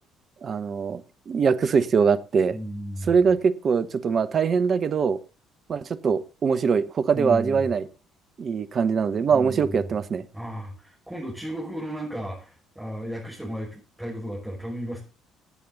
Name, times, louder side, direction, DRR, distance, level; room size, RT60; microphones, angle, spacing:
voice 1, 0.4-1.0 1.3-2.5 3.1-5.2 5.7-7.8 8.4-10.2, right 6 dB, 45° right, 0.9 m, -22 dB
voice 2, 2.5-3.2 7.1-7.7 9.3-9.9 10.3-15.0, equal, 10° right, 5.7 m, -34 dB
18.5 x 8.6 x 4.0 m
hypercardioid pair, 50°, 0 cm